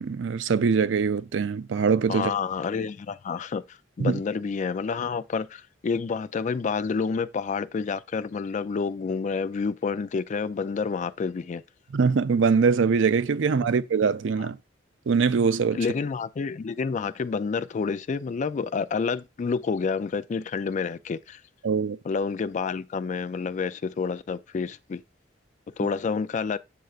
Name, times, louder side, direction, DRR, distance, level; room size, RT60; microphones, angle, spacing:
voice 1, 0.0-2.3 4.0-4.2 11.9-14.6 15.1-15.8 21.6-22.0, right 5 dB, 85° right, 0.5 m, -23 dB
voice 2, 2.1-11.6 14.4-14.5 15.7-21.4 22.0-25.0 25.8-26.6, left 5 dB, 40° left, 0.3 m, -29 dB
7.7 x 6.7 x 2.4 m
head